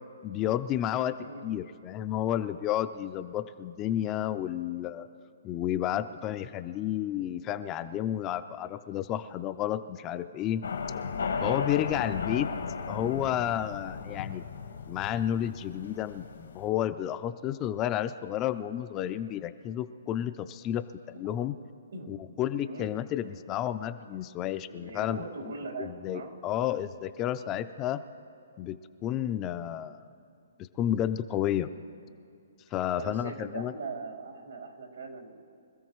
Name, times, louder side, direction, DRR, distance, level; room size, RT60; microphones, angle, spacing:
voice 1, 0.2-1.2 1.4-5.1 5.4-10.6 11.4-12.5 12.9-14.4 14.9-21.5 22.1-25.2 25.8-28.0 28.6-30.0 30.8-31.7 32.7-33.7, left 11 dB, 15° left, 11 dB, 0.3 m, -31 dB
sound 1, 10.6-16.7, left 5 dB, 85° left, 1.4 m, -35 dB
voice 2, 22.7-23.3 24.7-26.4 32.9-35.4, right 3 dB, 90° right, -3 dB, 3.6 m, -41 dB
25.0 x 13.5 x 3.1 m, 2.4 s
hypercardioid pair, 170°, 0 cm